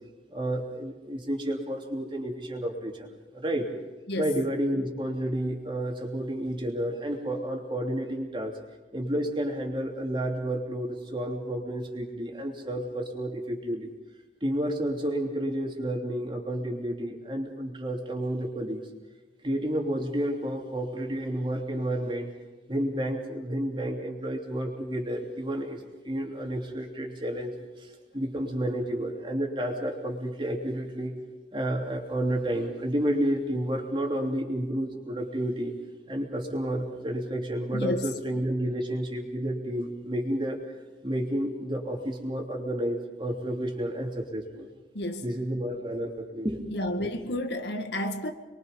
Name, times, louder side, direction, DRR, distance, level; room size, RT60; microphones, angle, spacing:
voice 1, 0.3-3.1 3.3-3.7 4.2-8.5 8.9-13.9 14.4-18.8 19.4-22.3 22.7-27.6 28.1-31.1 31.5-35.7 36.1-40.6 41.0-44.7 45.2-46.6 47.0-47.1, right 1 dB, 25° right, 3.2 m, -30 dB
voice 2, 37.7-38.1 44.9-45.2 46.7-48.3, left 1 dB, 70° left, 2.0 m, -31 dB
28.0 x 23.0 x 5.4 m
head